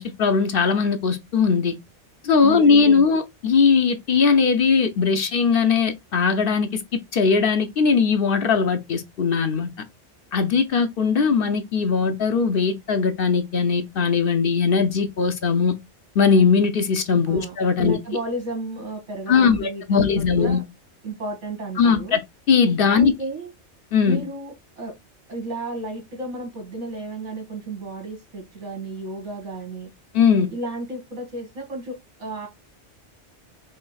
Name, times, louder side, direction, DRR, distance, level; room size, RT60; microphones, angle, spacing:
voice 1, 0.0-1.8 2.2-9.7 10.3-15.8 16.2-18.0 19.3-20.6 21.8-22.2 22.5-23.1 23.9-24.2 30.1-30.5, left 5 dB, 60° left, 0.8 m, -19 dB
voice 2, 2.4-3.2 17.3-20.6 21.0-22.2 22.9-23.5 24.1-25.0 25.3-29.9 30.5-32.5, right 2 dB, 80° right, 2.5 m, -33 dB
5.1 x 3.4 x 2.3 m
omnidirectional pair, 1.2 m